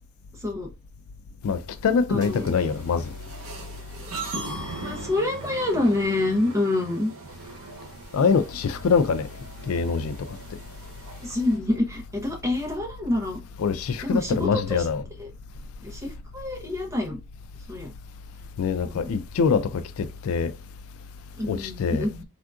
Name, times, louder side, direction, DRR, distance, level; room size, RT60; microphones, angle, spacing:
voice 1, 1.4-3.1 8.1-9.3 9.7-10.4 13.6-15.0 18.6-20.5 21.5-22.1, left 5 dB, 85° left, 0.3 m, -24 dB
voice 2, 2.1-2.5 4.8-7.1 11.2-13.4 14.0-14.9 15.2-15.3 15.8-17.2 17.7-17.9 18.9-19.2 21.4-22.2, left 2 dB, 15° right, 0.7 m, -27 dB
sound 1, 2.2-11.6, right 2 dB, 85° right, 0.8 m, -39 dB
3.5 x 2.5 x 2.3 m
head